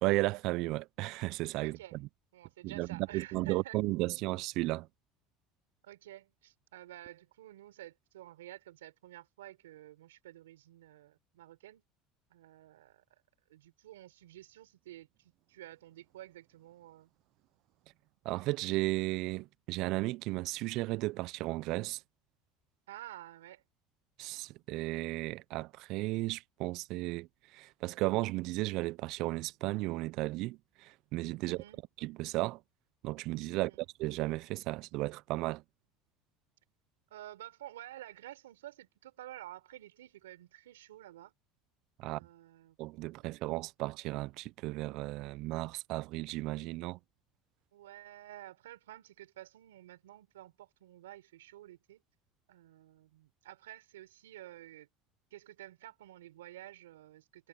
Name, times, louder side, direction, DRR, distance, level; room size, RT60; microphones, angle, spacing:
voice 1, 0.0-2.1 2.6-4.9 18.2-22.0 24.2-31.6 32.0-32.6 33.0-35.6 42.0-42.2 42.8-47.0, right 20 dB, 65° right, 0.4 m, -34 dB
voice 2, 1.6-2.0 2.3-3.8 5.8-11.8 12.3-13.0 13.5-17.1 22.9-23.6 31.4-31.8 33.5-33.8 37.1-41.3 42.0-43.4 47.7-52.0 52.5-54.9 55.3-57.5, right 14 dB, 90° right, 4.1 m, -51 dB
hypercardioid pair, 85°, 0 cm